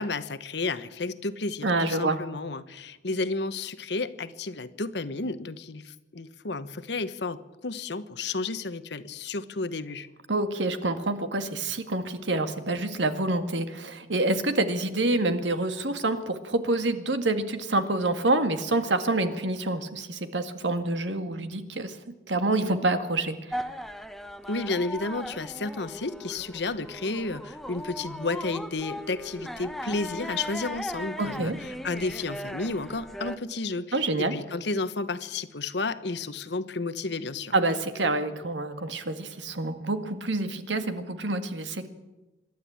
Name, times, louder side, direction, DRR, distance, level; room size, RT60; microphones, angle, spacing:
voice 1, 0.0-10.1 24.5-37.5, left 3 dB, 70° left, 12 dB, 1.1 m, -32 dB
voice 2, 1.6-2.2 10.3-22.0 22.3-23.7 31.2-31.6 33.9-34.3 37.5-41.9, right 2 dB, 85° right, 8 dB, 1.9 m, -27 dB
sound 1, 23.5-33.4, equal, ahead, 0.8 m, -38 dB
26.5 x 12.0 x 8.7 m, 1.1 s
head